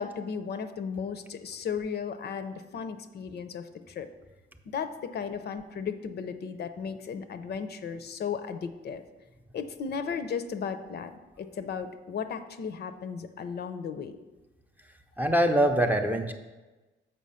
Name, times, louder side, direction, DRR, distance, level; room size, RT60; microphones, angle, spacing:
voice 1, 0.0-4.1 4.7-9.0 9.5-11.1 11.4-14.2, left 6 dB, 50° left, 10 dB, 0.5 m, -35 dB
voice 2, 15.2-16.3, right 1 dB, 10° right, 5 dB, 0.5 m, -23 dB
7.5 x 5.5 x 5.5 m, 1.2 s
cardioid pair, 150°, 21 cm